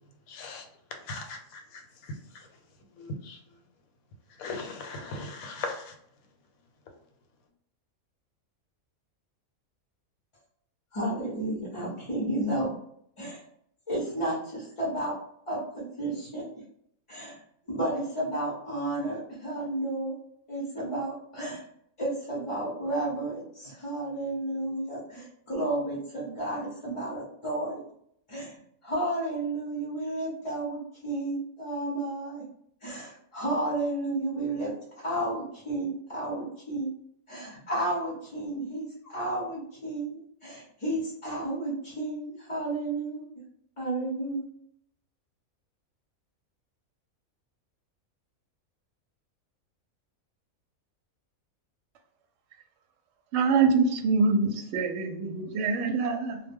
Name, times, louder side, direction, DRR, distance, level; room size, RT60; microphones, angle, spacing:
voice 1, 0.3-0.6 1.1-1.6 3.3-3.4 4.4-5.8, left 3 dB, 85° left, 1.1 m, -37 dB
voice 2, 10.9-12.7 13.2-13.4 13.9-15.1 15.5-16.4 17.1-17.4 17.7-20.1 20.5-21.6 22.0-27.8 28.3-28.6 28.8-32.4 32.8-36.9 37.3-43.2 43.8-44.4, right 1 dB, 35° left, 0.5 m, -32 dB
voice 3, 53.3-56.4, right 4 dB, 65° right, 0.8 m, -25 dB
2.2 x 2.1 x 3.4 m
omnidirectional pair, 1.5 m